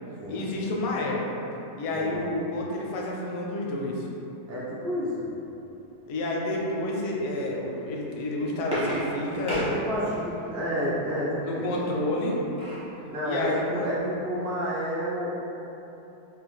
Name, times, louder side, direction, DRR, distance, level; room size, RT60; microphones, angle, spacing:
voice 1, 0.3-1.3 1.8-4.1 6.1-9.8 11.4-12.4 13.2-14.0, left 1 dB, 80° left, -2 dB, 1.2 m, -29 dB
voice 2, 4.5-5.3 9.7-11.7 13.1-15.3, equal, 80° right, -8 dB, 0.5 m, -30 dB
sound 1, 8.1-10.5 12.0-12.9 13.4-13.5 13.8-14.0, equal, 5° right, 0.5 m, -33 dB
3.4 x 2.4 x 3.0 m, 3.0 s
omnidirectional pair, 1.9 m